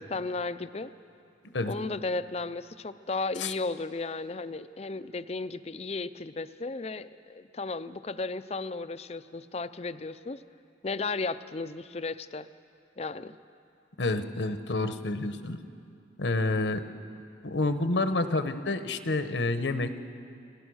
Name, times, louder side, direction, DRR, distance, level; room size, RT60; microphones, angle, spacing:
voice 1, 0.1-0.9 1.7-10.4 10.8-12.5 13.0-13.4, left 3 dB, 35° left, 13 dB, 0.5 m, -34 dB
voice 2, 14.0-15.6 16.2-16.8 17.4-20.1, left 2 dB, 75° left, 9 dB, 1.0 m, -28 dB
30.0 x 18.0 x 6.3 m, 2.6 s
head